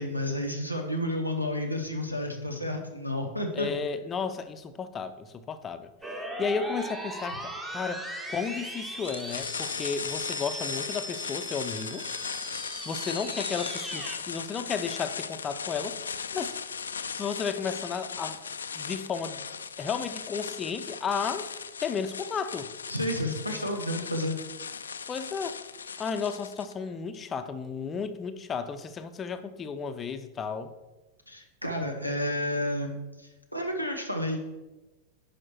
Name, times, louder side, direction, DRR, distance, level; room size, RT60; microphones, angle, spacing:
voice 1, 0.0-3.7 22.9-24.4 31.3-34.4, left 1 dB, 90° right, 4 dB, 1.2 m, -31 dB
voice 2, 3.5-5.9 6.4-8.0 8.3-12.0 12.8-16.0 16.3-16.5 17.2-18.4 18.7-19.4 19.8-21.5 21.8-22.7 25.1-25.6 26.0-30.7, left 6 dB, 25° left, 9 dB, 0.6 m, -33 dB
sound 1, 6.0-14.2, right 1 dB, 10° right, 1.1 m, -38 dB
sound 2, 9.0-26.7, left 6 dB, 70° left, 0.4 m, -37 dB
10.5 x 5.0 x 4.4 m, 1.1 s
figure-of-eight pair, 90°, 0 cm